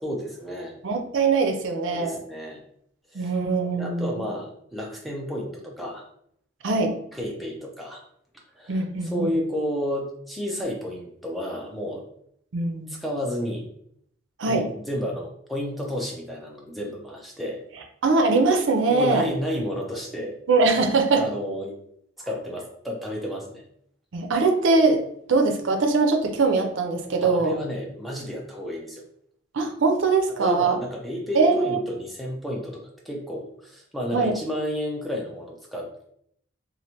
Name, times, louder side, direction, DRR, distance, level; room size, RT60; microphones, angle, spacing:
voice 1, 0.0-0.7 1.9-2.6 3.1-3.3 3.8-6.1 7.1-8.0 8.6-12.1 12.9-13.7 14.5-17.6 18.9-20.4 21.1-21.8 22.2-23.6 27.2-29.0 30.4-36.1, equal, ahead, -2 dB, 0.5 m, -31 dB
voice 2, 0.8-2.2 3.1-4.2 6.6-6.9 8.7-9.3 12.5-12.9 14.4-14.6 18.0-19.2 20.5-21.2 24.1-25.0 25.3-27.5 29.5-30.8 31.3-31.8 34.1-34.4, right 3 dB, 70° right, 5 dB, 0.5 m, -22 dB
3.1 x 2.5 x 2.8 m, 0.68 s
head